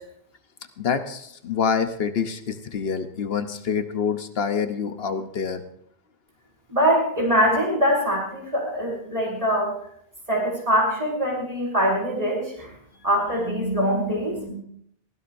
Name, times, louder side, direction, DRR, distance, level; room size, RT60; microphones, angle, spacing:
voice 1, 0.8-5.6, left 6 dB, 70° left, 8 dB, 1.1 m, -26 dB
voice 2, 6.7-9.7 10.3-12.7 13.0-14.5, equal, 35° right, -3 dB, 6.0 m, -23 dB
22.5 x 16.5 x 2.6 m, 0.69 s
omnidirectional pair, 1.1 m